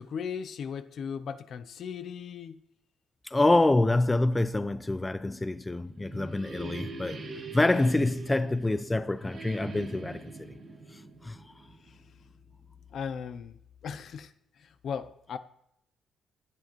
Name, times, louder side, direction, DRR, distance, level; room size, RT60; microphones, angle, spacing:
voice 1, 0.0-2.6 11.9-12.0 12.9-13.6 13.8-15.4, left 7 dB, 60° left, 0.6 m, -37 dB
voice 2, 3.2-7.2 7.5-10.3 10.9-11.4, left 2 dB, 15° left, 0.4 m, -26 dB
sound 1, 5.5-12.2, right 2 dB, 55° right, 2.7 m, -42 dB
17.5 x 7.4 x 3.1 m
cardioid pair, 90°, 0 cm